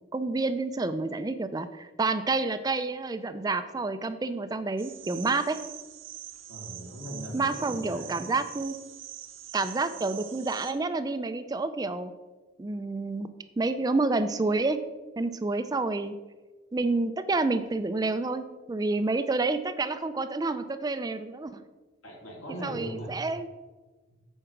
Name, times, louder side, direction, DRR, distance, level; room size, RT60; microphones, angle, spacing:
voice 1, 0.1-5.6 7.3-8.8 9.5-12.1 12.6-13.3 13.6-14.8 15.2-16.1 16.7-21.6 22.6-23.5, right 3 dB, 20° right, 11 dB, 0.3 m, -29 dB
sound 1, 4.8-10.7, right 11 dB, 75° right, 0.9 m, -44 dB
voice 2, 6.5-8.2 22.0-23.1, right 1 dB, 85° left, -2 dB, 2.7 m, -39 dB
8.1 x 4.8 x 5.9 m, 1.3 s
head